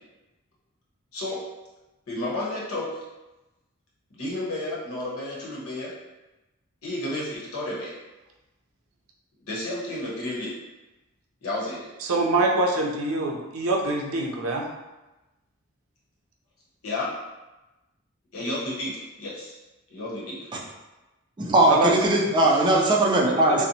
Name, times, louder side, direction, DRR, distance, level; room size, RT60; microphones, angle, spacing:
voice 1, 2.1-3.0 4.1-5.9 6.8-7.9 9.5-10.5 11.4-11.9 16.8-17.1 18.3-19.6 19.9-20.4, left 1 dB, 90° left, -6 dB, 0.9 m, -31 dB
voice 2, 12.0-14.6 21.7-21.9 23.3-23.6, right 2 dB, 85° right, 0 dB, 0.5 m, -24 dB
voice 3, 21.4-23.6, right 1 dB, 20° right, -2 dB, 0.3 m, -20 dB
2.8 x 2.0 x 2.6 m, 1.1 s
head